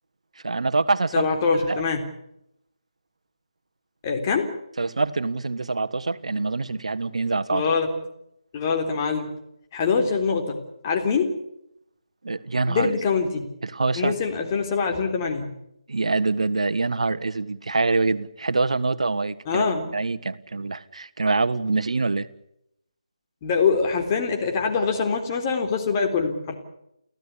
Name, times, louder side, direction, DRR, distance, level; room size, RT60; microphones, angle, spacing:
voice 1, 0.4-1.3 1.7-1.8 4.8-7.6 12.2-12.9 13.6-14.2 15.9-19.6 19.9-22.3, right 3 dB, 70° right, 1.5 m, -25 dB
voice 2, 1.1-2.0 4.0-4.5 7.5-7.9 8.5-9.3 9.7-11.4 12.7-13.5 14.0-15.5 19.5-19.9 23.4-26.5, left 5 dB, 25° left, 3.7 m, -24 dB
30.0 x 15.5 x 8.5 m
figure-of-eight pair, 155°, 4 cm